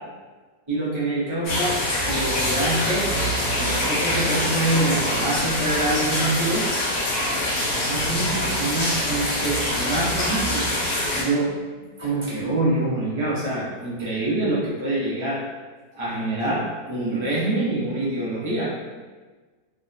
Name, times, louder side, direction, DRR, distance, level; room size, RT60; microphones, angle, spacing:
voice 1, 0.7-6.6 7.7-10.7 11.1-15.4 15.9-18.7, right 2 dB, 45° right, -8 dB, 0.3 m, -26 dB
sound 1, 1.4-11.2, left 1 dB, 65° left, 1.5 m, -24 dB
3.5 x 2.2 x 2.5 m, 1.3 s
omnidirectional pair, 1.8 m